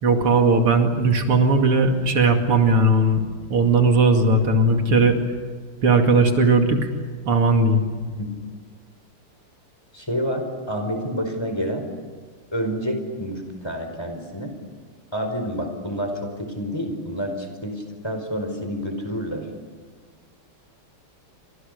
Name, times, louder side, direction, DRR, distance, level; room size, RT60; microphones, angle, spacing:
voice 1, 0.0-3.2 3.5-5.2 5.8-6.9 7.3-7.9, right 3 dB, 85° right, 4 dB, 3.3 m, -18 dB
voice 2, 4.2-5.1 8.1-8.4 9.9-11.9 12.5-14.5 15.1-19.5, equal, 10° left, 5 dB, 4.7 m, -29 dB
29.5 x 26.0 x 6.7 m, 1.5 s
omnidirectional pair, 2.4 m